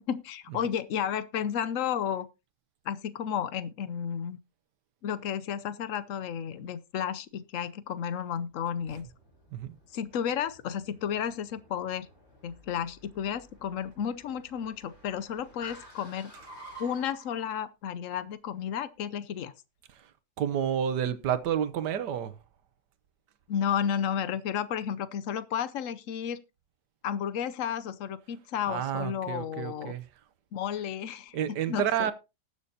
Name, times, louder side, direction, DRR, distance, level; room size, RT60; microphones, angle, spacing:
voice 1, 0.0-2.3 2.8-4.4 5.0-9.1 9.9-12.1 12.4-16.3 16.8-19.5 23.5-26.4 27.0-29.9 30.5-31.4 31.7-32.1, left 8 dB, 60° left, 1.0 m, -32 dB
Car, 8.6-17.5, equal, 40° left, 4.9 m, -52 dB
voice 2, 20.4-22.3 28.7-30.1 31.3-32.1, right 9 dB, 85° right, 1.6 m, -30 dB
19.5 x 6.9 x 2.8 m
omnidirectional pair, 1.8 m